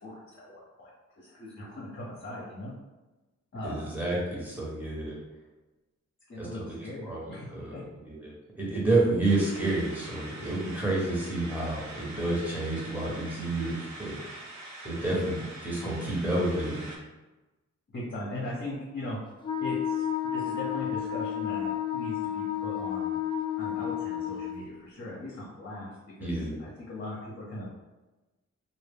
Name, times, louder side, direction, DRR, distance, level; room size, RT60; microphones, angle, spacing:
voice 1, 0.0-2.7 3.5-3.9 6.3-7.8 17.9-19.2 19.6-23.2 23.6-27.7, left 1 dB, 40° left, -6 dB, 0.7 m, -39 dB
voice 2, 3.6-5.2 6.4-6.8 7.0-14.2 14.8-16.9 26.2-26.6, right 2 dB, 5° right, -5 dB, 1.0 m, -30 dB
sound 1, 9.2-17.0, right 2 dB, 65° right, 0.7 m, -44 dB
Wind instrument woodwind instrument, 19.4-24.6, left 9 dB, 15° left, 0.4 m, -31 dB
2.0 x 2.0 x 3.5 m, 1.1 s
cardioid pair, 60°, 29 cm